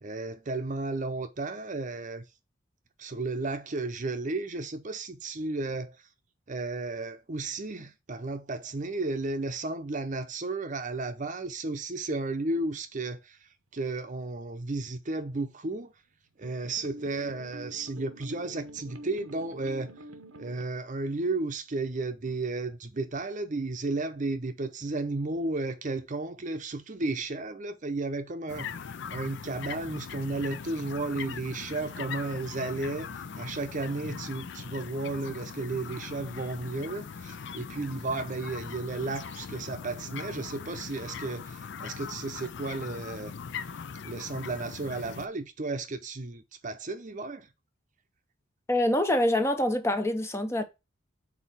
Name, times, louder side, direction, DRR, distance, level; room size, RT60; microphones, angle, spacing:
voice 1, 0.0-2.2 3.0-6.0 6.5-13.4 13.7-15.9 16.4-19.9 20.4-28.7 29.1-43.3 44.0-47.5, right 2 dB, 40° right, 0.7 m, -33 dB
sound 1, 14.5-14.6 14.9-15.0 16.4-20.7, right 1 dB, 85° right, 0.9 m, -46 dB
sound 2, 28.5-45.3, left 6 dB, 60° left, 0.5 m, -40 dB
voice 2, 48.7-50.6, left 1 dB, 15° left, 0.6 m, -25 dB
4.6 x 4.2 x 5.4 m
head